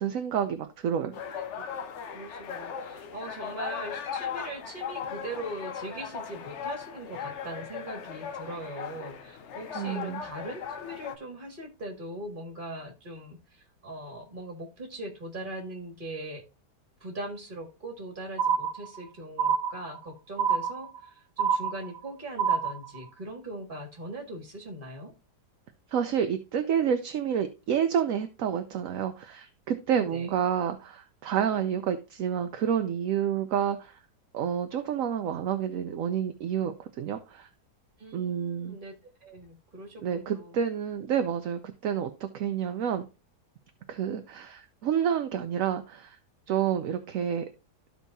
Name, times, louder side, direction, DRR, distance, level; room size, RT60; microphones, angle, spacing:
voice 1, 0.0-1.1 9.7-10.2 25.9-33.9 34.3-37.5 38.1-38.8 40.0-43.1 43.9-46.2 46.5-47.4, right 8 dB, 65° right, 7 dB, 0.9 m, -29 dB
sound 1, 1.1-11.2, left 7 dB, 55° left, 0.8 m, -38 dB
voice 2, 1.3-1.6 2.1-16.4 17.0-25.1 29.9-30.3 38.0-40.6, right 1 dB, 30° right, 2 dB, 2.0 m, -40 dB
sound 2, 18.4-19.1 19.4-20.1 20.4-21.1 21.4-22.1 22.4-23.1, right 7 dB, 85° right, 1.4 m, -27 dB
13.5 x 4.6 x 2.6 m, 0.28 s
omnidirectional pair, 1.8 m